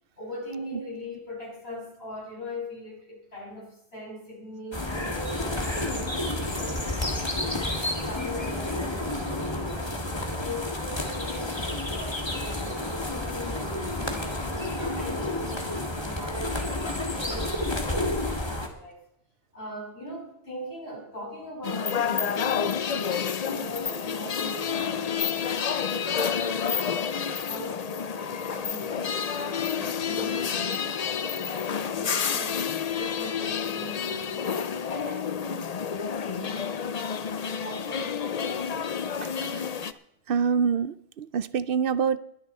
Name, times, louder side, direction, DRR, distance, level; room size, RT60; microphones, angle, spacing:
voice 1, 0.2-6.8 7.1-10.0 10.4-15.6 16.0-19.0 19.5-23.1 23.5-27.1 27.5-36.9 37.4-38.8, left 1 dB, 75° left, 6.7 m, -41 dB
sound 1, 4.7-18.7, left 1 dB, 25° left, 1.8 m, -30 dB
sound 2, 21.6-39.9, left 7 dB, 45° left, 0.6 m, -29 dB
voice 2, 40.3-42.2, right 6 dB, 65° right, 0.8 m, -25 dB
21.5 x 9.6 x 4.3 m
omnidirectional pair, 1.1 m